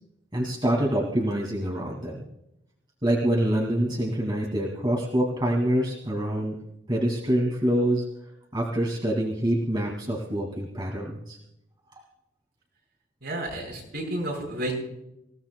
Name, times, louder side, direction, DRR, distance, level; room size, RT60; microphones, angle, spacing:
voice 1, 0.3-2.2 3.0-6.5 6.9-8.0 8.5-11.4, right 1 dB, 25° right, -2 dB, 2.2 m, -26 dB
voice 2, 13.2-14.7, right 1 dB, 55° right, -2 dB, 6.9 m, -31 dB
26.5 x 16.5 x 2.2 m, 0.84 s
head